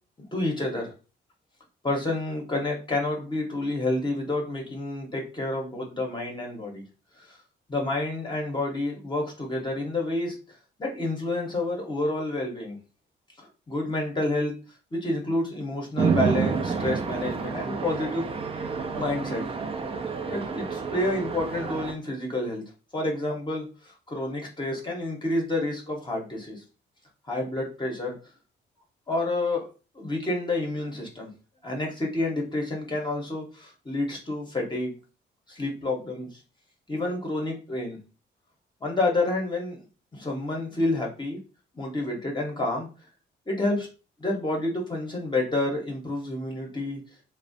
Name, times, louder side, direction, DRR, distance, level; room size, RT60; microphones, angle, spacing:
voice 1, 0.3-0.9 1.8-6.8 7.2-7.4 7.7-10.4 10.8-12.8 13.4-14.5 14.9-18.2 18.9-19.4 20.3-22.6 22.9-26.6 27.3-28.2 29.1-29.7 29.9-31.3 31.6-34.9 35.5-36.4 36.9-38.0 38.8-39.8 40.1-41.4 41.7-42.9 43.5-43.9 44.2-47.0, left 2 dB, 20° left, 0 dB, 0.8 m, -29 dB
Chatter / Traffic noise roadway noise / Train, 16.0-21.9, right 5 dB, 30° right, 0.4 m, -29 dB
2.4 x 2.0 x 2.5 m, 0.33 s
cardioid pair, 90°, 20 cm